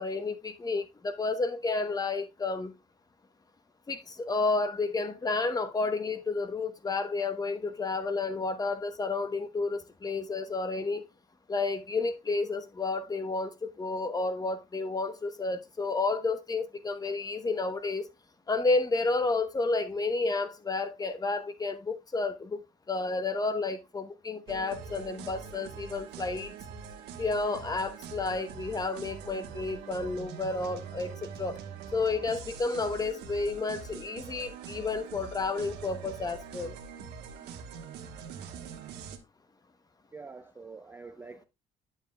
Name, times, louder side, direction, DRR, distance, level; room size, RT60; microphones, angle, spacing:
voice 1, 0.0-2.7 3.9-11.1 11.5-18.0 18.5-22.6 22.9-26.5 27.2-31.6 31.9-36.8, left 3 dB, 20° left, 1.0 m, -31 dB
sound 1, 24.5-39.2, right 6 dB, 85° right, 1.3 m, -44 dB
voice 2, 40.1-41.4, right 4 dB, 15° right, 0.4 m, -46 dB
9.1 x 7.4 x 2.3 m
cardioid pair, 110°, 17 cm